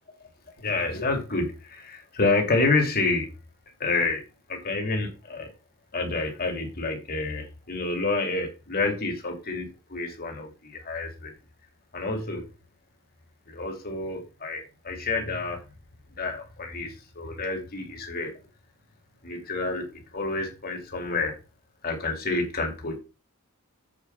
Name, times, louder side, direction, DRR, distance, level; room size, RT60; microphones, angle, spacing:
voice 1, 0.6-3.3 3.8-4.2 4.5-5.5 5.9-11.3 11.9-12.5 13.5-15.6 16.2-18.3 19.2-21.4 21.8-23.0, left 3 dB, 45° left, 2 dB, 2.6 m, -28 dB
8.2 x 4.8 x 5.7 m, 0.30 s
head